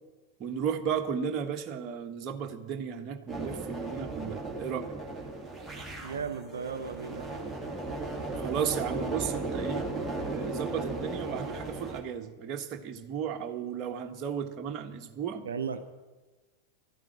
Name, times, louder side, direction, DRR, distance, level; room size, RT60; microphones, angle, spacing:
voice 1, 0.4-4.9 8.3-9.9 10.3-15.4, right 7 dB, 35° right, 5 dB, 1.4 m, -34 dB
sound 1, 3.3-12.0, right 2 dB, 5° right, 2.5 m, -36 dB
voice 2, 6.0-7.5 15.4-15.8, right 6 dB, 65° right, 7 dB, 0.8 m, -36 dB
12.5 x 9.1 x 9.9 m, 1.3 s
figure-of-eight pair, 90°, 0 cm